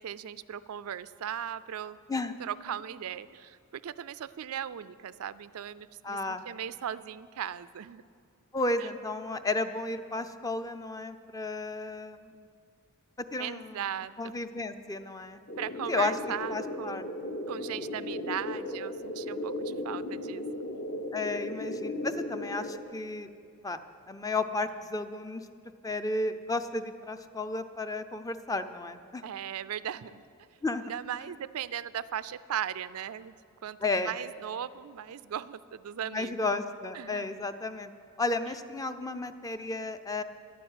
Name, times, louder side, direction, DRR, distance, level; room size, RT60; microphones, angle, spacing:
voice 1, 0.0-2.0 2.4-3.6 3.8-8.0 13.4-14.3 15.6-17.0 17.5-20.4 29.2-30.2 30.8-33.3 33.6-36.3 36.9-37.3, right 9 dB, 70° right, 16 dB, 0.4 m, -38 dB
voice 2, 6.0-6.4 8.5-12.5 13.3-13.8 14.2-15.4 15.9-16.1 16.5-17.1 21.1-23.3 23.6-23.8 24.1-25.4 25.8-29.2 30.6-30.9 33.8-34.1 36.1-37.9 38.2-40.2, left 2 dB, 15° left, 10 dB, 0.5 m, -33 dB
sound 1, 15.5-22.8, left 1 dB, 45° left, 0.9 m, -36 dB
11.5 x 9.4 x 8.9 m, 2.3 s
head